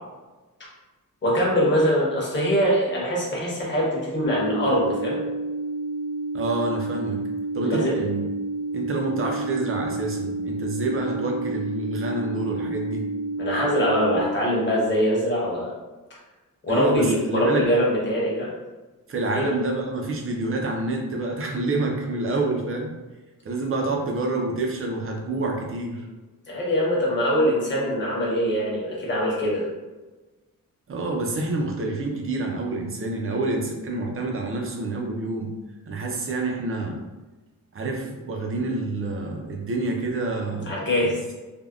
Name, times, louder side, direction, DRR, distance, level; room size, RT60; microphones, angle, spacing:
voice 1, 1.2-5.2 7.6-7.9 13.4-15.7 16.6-18.5 19.3-19.6 26.5-29.6 40.7-41.2, equal, 35° left, -5 dB, 0.8 m, -23 dB
sound 1, 4.2-14.2, right 2 dB, 70° left, 0.5 m, -30 dB
voice 2, 6.3-7.2 7.5-8.2 8.7-13.1 16.7-17.6 19.1-22.9 23.4-26.1 30.9-35.5 35.9-37.0 37.7-40.7 41.0-41.1, right 2 dB, 40° right, 1 dB, 0.4 m, -27 dB
3.4 x 2.1 x 2.3 m, 1.2 s
wide cardioid pair, 175°, 34 cm